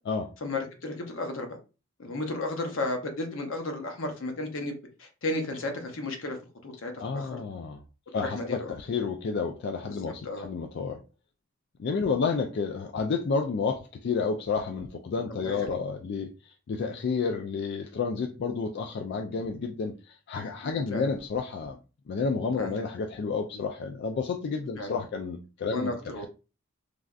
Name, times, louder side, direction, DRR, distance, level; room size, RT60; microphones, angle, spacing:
voice 1, 0.4-1.5 2.0-6.4 6.6-7.4 8.2-8.7 9.9-10.0 10.2-10.5 15.3-15.8 20.9-21.1 22.6-22.8 24.8-25.0 25.7-26.3, left 2 dB, 75° left, 0.8 m, -33 dB
voice 2, 7.0-7.8 8.1-11.0 11.8-21.8 22.1-26.3, left 5 dB, 55° left, 0.3 m, -30 dB
3.3 x 2.6 x 2.3 m
head